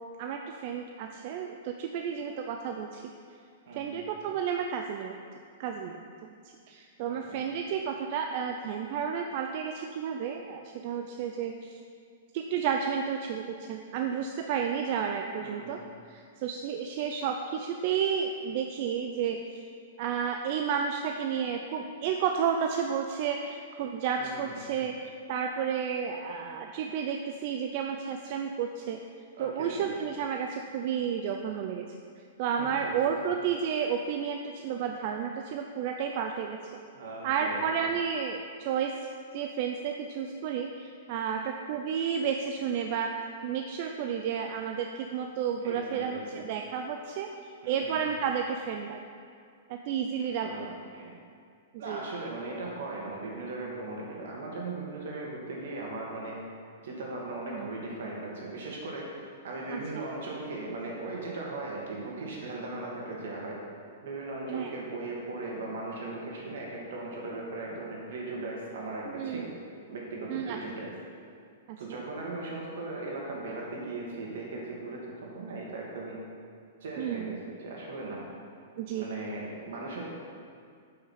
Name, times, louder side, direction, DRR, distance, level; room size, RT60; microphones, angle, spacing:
voice 1, 0.0-3.0 3.7-5.2 5.6-6.3 6.7-11.8 12.3-15.8 16.1-19.6 20.0-29.0 29.4-31.9 32.4-36.6 37.2-39.0 39.3-43.2 43.4-47.3 47.7-49.0 49.7-50.7 51.9-52.0 57.5-57.7 59.7-60.1 64.5-64.7 69.1-69.5 70.3-70.6 71.7-71.8 77.0-77.3 78.8-79.1, right 7 dB, 40° right, 4 dB, 0.4 m, -32 dB
voice 2, 3.7-4.0 7.1-7.4 15.4-15.9 24.2-24.4 29.4-29.8 32.5-32.9 36.9-37.7 45.6-46.4 47.6-48.0 50.4-51.1 51.8-56.4 56.8-63.6 64.0-69.5 69.9-70.9 71.8-76.2 76.8-78.3 78.9-80.1, right 2 dB, 70° right, -3 dB, 2.5 m, -38 dB
8.3 x 5.7 x 5.7 m, 2.2 s
hypercardioid pair, 165°, 0 cm